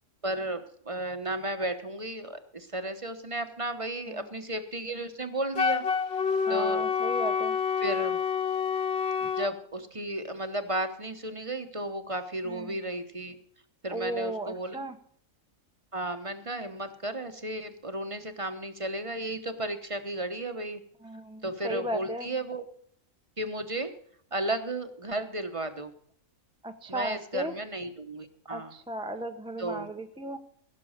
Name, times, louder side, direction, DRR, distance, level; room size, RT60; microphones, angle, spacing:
voice 1, 0.2-5.9 6.5-6.9 7.8-8.2 9.4-13.4 13.8-14.8 15.9-20.8 21.4-22.6 23.4-23.9 24.3-25.9 26.9-28.7 29.6-29.9, right 1 dB, 25° right, 8 dB, 1.0 m, -34 dB
Wind instrument woodwind instrument, 5.6-9.5, left 6 dB, 55° left, 1.1 m, -28 dB
voice 2, 6.5-7.6 9.2-9.3 12.5-12.8 13.9-15.0 21.0-22.3 26.6-27.5 28.5-30.4, right 1 dB, 5° right, 5 dB, 0.6 m, -35 dB
16.5 x 6.9 x 6.5 m, 0.63 s
omnidirectional pair, 1.4 m